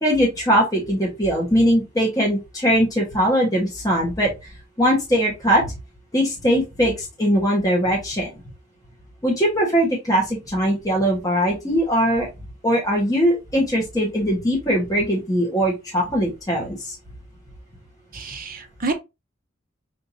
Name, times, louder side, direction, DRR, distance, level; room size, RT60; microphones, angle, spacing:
voice 1, 0.0-4.3 4.8-5.7 6.1-8.3 9.2-12.3 12.6-17.0, equal, 20° left, 1.3 m, -20 dB
voice 2, 18.1-18.9, right 3 dB, 45° right, 1.0 m, -28 dB
6.6 x 2.7 x 2.7 m
head